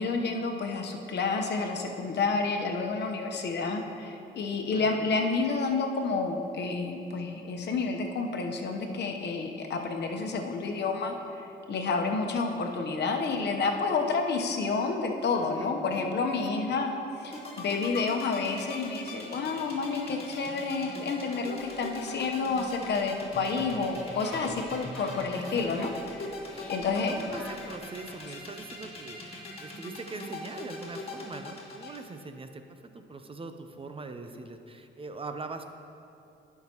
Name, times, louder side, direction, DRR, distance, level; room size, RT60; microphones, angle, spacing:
voice 1, 0.0-11.2 11.7-25.9 26.7-27.2, left 4 dB, 60° left, 3 dB, 1.0 m, -29 dB
voice 2, 4.7-5.1 15.5-15.7 16.2-16.8 25.3-25.8 26.5-26.7 27.1-35.7, right 3 dB, 25° right, 7 dB, 0.6 m, -42 dB
sound 1, 17.2-32.0, left 3 dB, 30° left, 1.9 m, -41 dB
Singing, 21.6-27.8, left 1 dB, 5° left, 2.2 m, -46 dB
16.5 x 5.8 x 3.0 m, 2.7 s
cardioid pair, 90°, 20 cm